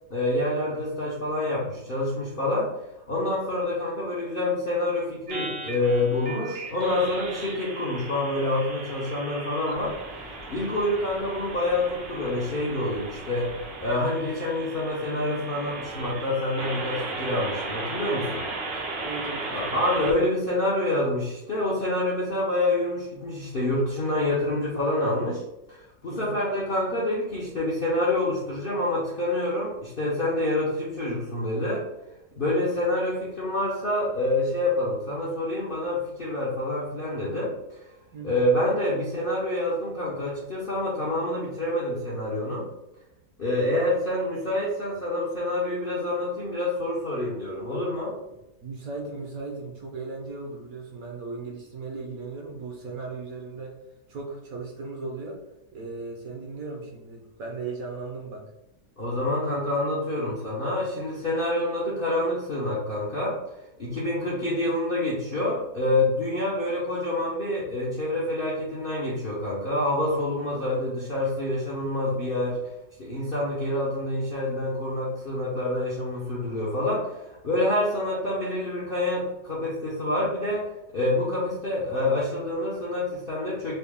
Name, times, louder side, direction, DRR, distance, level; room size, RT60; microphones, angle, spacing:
voice 1, 0.1-2.7 3.1-10.0 10.5-13.5 13.8-18.4 19.5-25.4 25.7-31.9 32.4-37.8 38.2-42.7 43.4-48.2 59.0-63.4 63.8-72.6 73.0-80.7 80.9-83.8, left 1 dB, 55° left, -5 dB, 0.6 m, -27 dB
sound 1, 5.3-20.1, right 3 dB, 80° right, 1.5 m, -36 dB
voice 2, 19.0-19.8 26.1-26.4 38.1-38.5 48.6-53.7 54.1-55.4 55.7-58.5, right 3 dB, 65° right, 0 dB, 1.0 m, -37 dB
4.1 x 2.2 x 3.4 m, 0.90 s
omnidirectional pair, 1.9 m